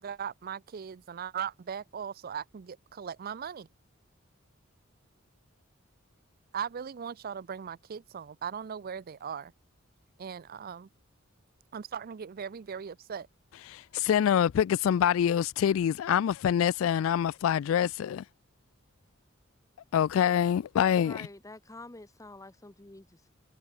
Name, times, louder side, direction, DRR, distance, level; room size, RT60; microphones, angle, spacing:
voice 1, 0.0-3.7 6.5-9.5 10.2-10.9 11.7-13.3, right 7 dB, 45° right, 0.4 m, -38 dB
voice 2, 13.7-18.2 19.9-21.3, left 9 dB, 75° left, 0.3 m, -25 dB
voice 3, 21.0-23.3, left 2 dB, 15° left, 0.9 m, -47 dB
head